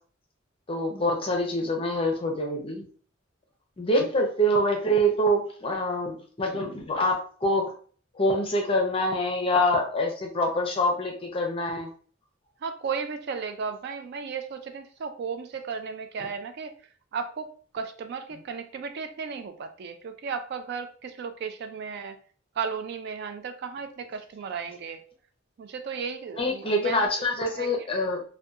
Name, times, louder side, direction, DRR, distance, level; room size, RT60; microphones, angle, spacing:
voice 1, 0.7-2.9 3.8-7.7 8.1-11.9 26.3-28.2, equal, 30° left, 1 dB, 0.6 m, -25 dB
voice 2, 12.6-16.7 17.1-17.5 17.7-22.2 22.6-25.0 25.6-27.1 27.4-27.7, right 5 dB, 55° right, 7 dB, 0.3 m, -34 dB
2.7 x 2.2 x 2.3 m, 0.43 s
head